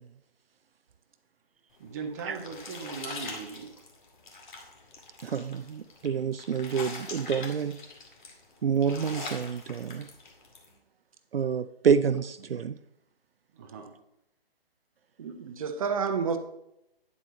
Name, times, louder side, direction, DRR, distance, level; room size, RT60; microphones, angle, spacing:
sound 1, 1.8-10.7, left 3 dB, 50° left, 2.4 m, -43 dB
voice 1, 1.8-3.7 13.5-13.9, right 5 dB, 15° right, 0.6 m, -39 dB
voice 2, 5.2-7.8 8.6-10.1 11.3-12.8, right 6 dB, 70° right, 0.5 m, -28 dB
voice 3, 15.2-16.4, right 6 dB, 35° right, 0.9 m, -29 dB
10.0 x 7.6 x 3.1 m
figure-of-eight pair, 145°, 30 cm